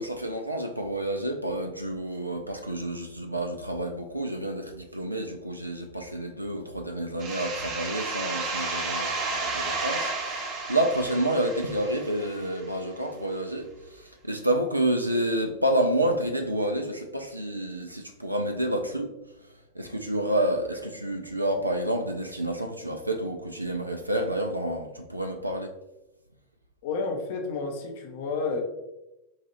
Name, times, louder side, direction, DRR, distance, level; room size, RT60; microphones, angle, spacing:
voice 1, 0.0-13.7 13.9-19.1 19.8-25.7, right 1 dB, 85° right, 4 dB, 0.3 m, -29 dB
sound 1, 7.2-12.7, right 3 dB, 35° right, 0.8 m, -32 dB
voice 2, 26.8-28.6, left 4 dB, 50° left, 3 dB, 0.6 m, -30 dB
4.6 x 2.4 x 2.8 m, 0.94 s
figure-of-eight pair, 90°, 0 cm